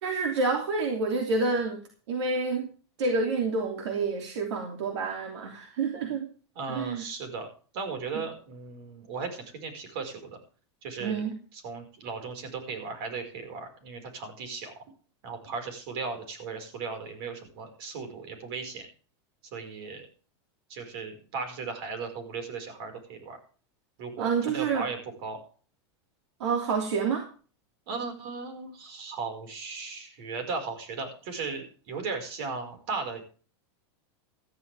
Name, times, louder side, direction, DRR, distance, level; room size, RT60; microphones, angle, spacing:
voice 1, 0.0-1.8 2.1-2.7 3.0-6.3 6.7-7.0 8.1-8.2 11.0-11.4 24.2-24.9 26.4-27.2, right 4 dB, 85° right, 2 dB, 3.0 m, -28 dB
voice 2, 6.6-7.5 7.7-10.4 10.8-11.2 11.6-14.8 15.2-18.9 19.5-20.1 20.7-23.4 24.0-25.4 27.9-33.2, right 4 dB, 60° right, 5 dB, 5.4 m, -36 dB
15.0 x 14.0 x 3.6 m, 0.39 s
supercardioid pair, 150°, 14 cm